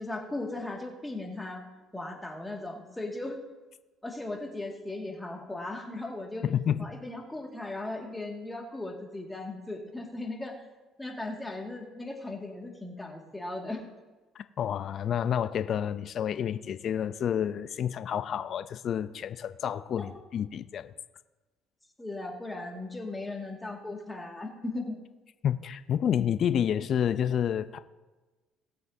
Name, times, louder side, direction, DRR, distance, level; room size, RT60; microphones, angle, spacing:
voice 1, 0.0-1.7 1.9-3.4 4.0-6.5 6.8-10.6 11.0-13.8 22.0-25.0, left 2 dB, 10° left, 0 dB, 2.0 m, -37 dB
voice 2, 6.4-6.9 14.3-20.9 25.4-27.8, left 9 dB, 55° left, 12 dB, 0.5 m, -29 dB
19.0 x 7.8 x 2.7 m, 1.2 s
supercardioid pair, 75°, 0 cm